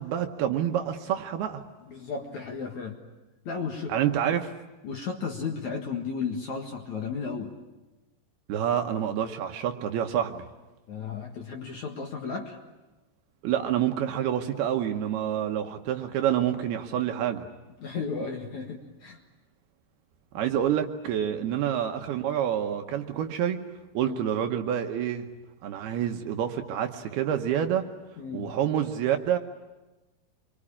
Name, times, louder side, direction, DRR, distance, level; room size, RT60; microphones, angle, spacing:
voice 1, 0.0-1.6 3.9-4.5 8.5-10.4 13.4-17.5 20.3-23.6 23.9-25.3 25.6-27.8 28.3-29.4, right 10 dB, 70° right, 5 dB, 2.7 m, -27 dB
voice 2, 1.9-3.0 3.5-3.9 4.8-7.5 10.9-12.6 17.8-19.2 21.4-21.6 24.0-24.2 28.2-28.6, left 5 dB, 55° left, 2 dB, 2.3 m, -34 dB
27.0 x 23.5 x 8.6 m, 1.1 s
omnidirectional pair, 5.2 m